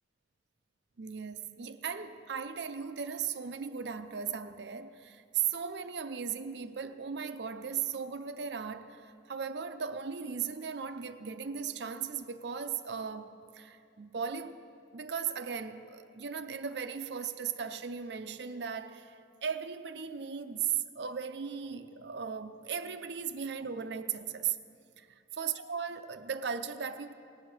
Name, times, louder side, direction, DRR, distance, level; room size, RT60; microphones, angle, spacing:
voice 1, 1.0-14.6 14.9-24.6 25.0-25.1 25.4-27.1, right 7 dB, 65° right, 0.6 m, -37 dB
18.5 x 8.5 x 6.2 m
head